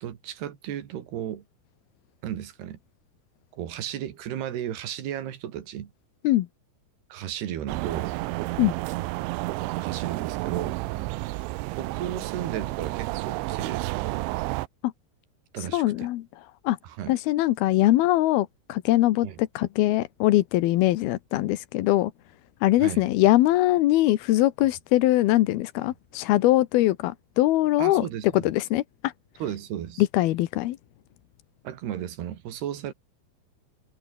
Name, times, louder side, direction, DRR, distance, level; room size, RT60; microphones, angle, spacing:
voice 1, 0.0-1.4 2.2-2.8 3.5-5.9 7.1-8.2 9.8-10.8 11.7-14.3 15.5-16.1 16.8-17.2 19.2-19.4 22.8-23.1 27.8-28.5 29.4-30.0 31.6-32.9, right 10 dB, 65° right, 4.0 m, -34 dB
sound 1, 7.7-14.7, right 20 dB, 90° right, 3.1 m, -31 dB
voice 2, 15.7-16.2 16.6-16.8 17.1-22.1 22.6-28.1 28.3-29.1 30.0-30.8, left 16 dB, 70° left, 2.5 m, -22 dB
omnidirectional pair, 5.3 m